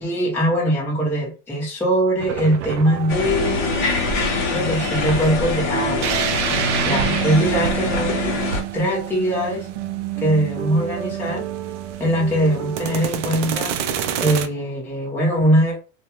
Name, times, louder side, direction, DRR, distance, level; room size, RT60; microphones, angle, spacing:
voice 1, 0.0-3.7 4.5-6.2 6.8-8.3 8.7-9.7 10.2-11.4 12.0-13.7 14.2-15.8, right 1 dB, 5° left, -4 dB, 0.7 m, -21 dB
sound 1, 2.2-14.5, right 9 dB, 85° right, 0.5 m, -27 dB
sound 2, 3.1-8.6, left 5 dB, 40° left, 0.7 m, -24 dB
2.3 x 2.2 x 2.9 m, 0.33 s
supercardioid pair, 130°, 35 cm